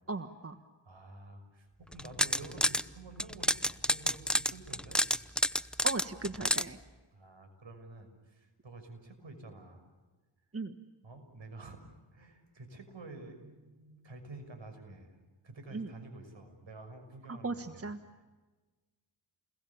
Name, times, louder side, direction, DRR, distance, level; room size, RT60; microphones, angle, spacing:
voice 1, 0.1-0.6 5.8-6.8 10.5-10.7 15.7-15.9 17.3-18.0, right 3 dB, 30° right, 9 dB, 1.5 m, -37 dB
voice 2, 0.8-5.0 7.1-9.9 11.0-11.8 12.1-17.9, right 2 dB, 65° right, 7 dB, 6.4 m, -50 dB
sound 1, 1.9-2.8 3.2-6.6, equal, ahead, 0.8 m, -29 dB
29.5 x 22.0 x 7.2 m, 1.2 s
cardioid pair, 50°, 49 cm